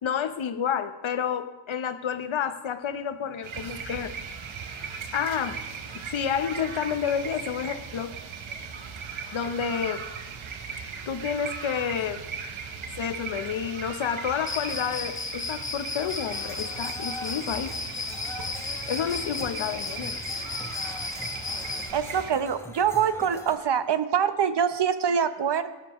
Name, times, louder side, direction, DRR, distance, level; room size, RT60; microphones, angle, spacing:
voice 1, 0.0-4.1 5.1-5.6 6.1-8.1 9.3-10.0 11.1-12.2 13.0-17.7 18.9-20.2, left 8 dB, 85° left, 10 dB, 0.9 m, -29 dB
sound 1, 3.4-22.3, right 6 dB, 85° right, 1.1 m, -38 dB
Cricket, 14.5-21.9, left 4 dB, 25° left, 0.9 m, -34 dB
sound 2, 16.2-23.6, left 1 dB, 5° left, 1.3 m, -43 dB
voice 2, 21.9-25.7, right 7 dB, 60° right, 12 dB, 0.9 m, -25 dB
17.0 x 12.5 x 3.1 m, 1.1 s
cardioid pair, 65°, 46 cm